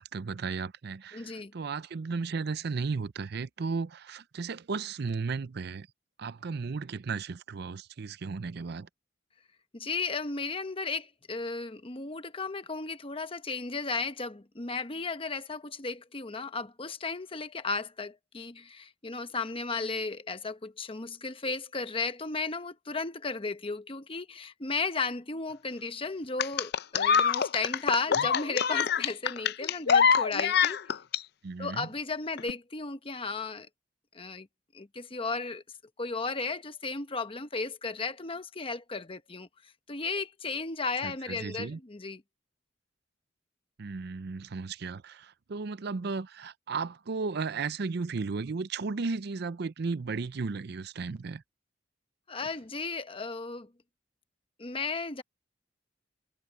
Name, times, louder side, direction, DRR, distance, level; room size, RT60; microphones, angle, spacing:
voice 1, 0.0-5.9 6.2-8.9 28.2-28.3 31.4-31.9 41.0-41.8 43.8-51.4, right 4 dB, 60° right, 0.5 m, -35 dB
voice 2, 1.1-1.5 9.7-30.8 31.6-33.7 34.1-34.5 34.7-35.6 36.0-39.5 39.9-42.2 52.3-53.7 54.6-55.2, left 4 dB, 30° left, 1.0 m, -34 dB
sound 1, 26.4-31.2 32.4-32.5, left 7 dB, 60° left, 0.5 m, -25 dB
head